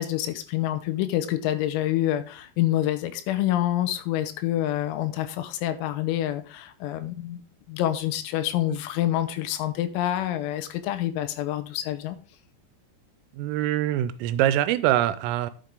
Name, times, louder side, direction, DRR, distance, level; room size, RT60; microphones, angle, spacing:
voice 1, 0.0-7.4 7.7-12.2, left 13 dB, 90° left, 10 dB, 3.8 m, -27 dB
voice 2, 13.3-15.5, right 12 dB, 85° right, 14 dB, 3.2 m, -24 dB
11.0 x 7.4 x 3.7 m, 0.38 s
omnidirectional pair, 6.0 m